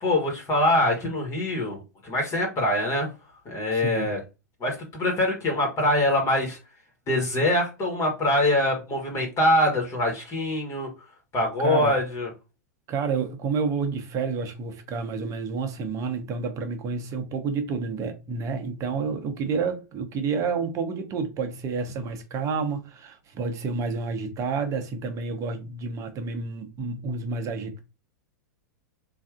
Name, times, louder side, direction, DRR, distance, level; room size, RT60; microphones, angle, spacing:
voice 1, 0.0-1.8 2.0-3.1 3.4-4.2 4.6-6.6 7.1-10.9 11.3-12.3, left 1 dB, 30° left, 1.3 m, -24 dB
voice 2, 3.7-4.1 11.6-11.9 12.9-27.8, right 5 dB, 35° right, 0.8 m, -29 dB
3.3 x 2.5 x 2.4 m
hypercardioid pair, 105°, 10 cm